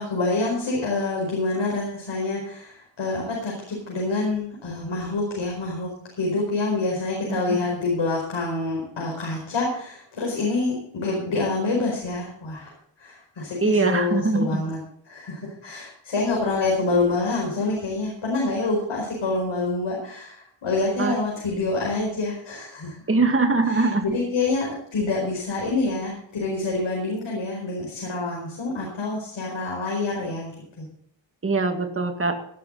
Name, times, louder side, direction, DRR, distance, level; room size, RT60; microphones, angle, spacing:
voice 1, 0.0-14.8 15.1-23.0 23.7-30.5 30.8-30.9, left 3 dB, 80° left, -2 dB, 4.9 m, -27 dB
voice 2, 13.6-14.6 21.0-21.1 23.1-24.0 31.4-32.4, right 3 dB, 30° right, 5 dB, 1.9 m, -22 dB
17.5 x 11.5 x 4.0 m, 0.65 s
wide cardioid pair, 160°, 46 cm